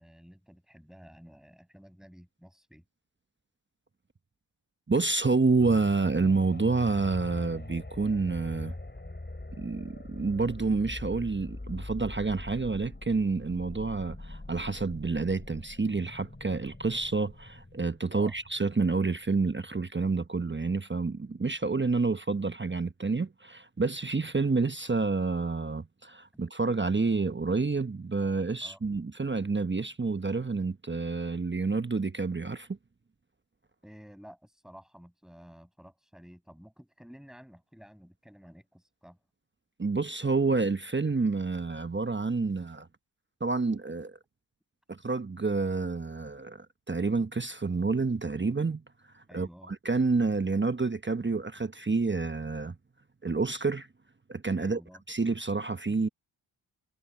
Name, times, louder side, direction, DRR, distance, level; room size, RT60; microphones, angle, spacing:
voice 1, 0.0-2.8 18.1-18.4 28.6-28.8 33.8-39.2 49.3-49.7 54.6-55.0, equal, ahead, 7.3 m, -52 dB
voice 2, 4.9-8.7 9.6-32.7 39.8-42.9 43.4-44.2 44.9-48.8 49.1-52.8 53.2-53.9 54.3-54.8 55.1-56.1, right 4 dB, 20° right, 1.1 m, -29 dB
sound 1, 5.6-19.3 19.7-19.8, left 2 dB, 20° left, 7.4 m, -43 dB
supercardioid pair, 45°, 50 cm